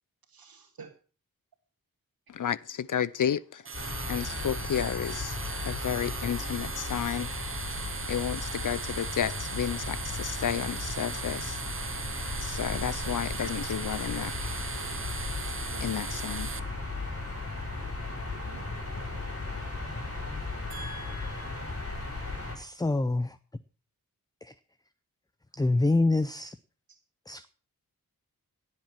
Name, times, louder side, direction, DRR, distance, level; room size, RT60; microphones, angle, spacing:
voice 1, 0.4-0.9 15.7-15.9 18.5-18.6 20.7-21.8, right 2 dB, 90° right, 2.0 m, -46 dB
voice 2, 2.3-3.6 4.1-5.4 5.6-7.3 8.1-11.6 12.4-14.6 15.8-16.5, left 9 dB, 60° left, 0.6 m, -32 dB
sound 1, 3.6-16.6, right 5 dB, 35° right, 0.8 m, -38 dB
sound 2, 3.7-22.6, left 3 dB, 40° left, 8.0 m, -36 dB
voice 3, 22.6-23.4 24.4-24.5 25.5-26.6 27.3-27.5, left 2 dB, 10° left, 0.6 m, -26 dB
17.5 x 7.6 x 5.9 m
wide cardioid pair, 90°, 35 cm